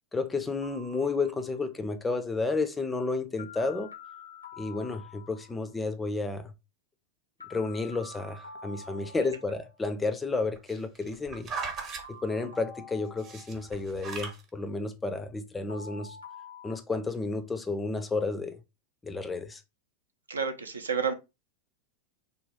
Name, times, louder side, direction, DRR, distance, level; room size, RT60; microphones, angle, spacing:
voice 1, 0.1-3.9 4.6-6.5 7.5-11.5 12.1-16.2 16.6-18.6 19.0-19.6, left 3 dB, 10° left, 0.4 m, -31 dB
sound 1, 0.6-1.8 3.4-5.7 7.4-9.7 11.5-13.9 15.7-16.8, left 3 dB, 80° left, 0.6 m, -47 dB
sound 2, 10.6-12.0 13.2-14.4 15.1-15.2, right 4 dB, 30° right, 0.8 m, -38 dB
voice 2, 20.3-21.1, right 6 dB, 75° right, 0.4 m, -30 dB
3.3 x 2.2 x 3.4 m
figure-of-eight pair, 90°, 0 cm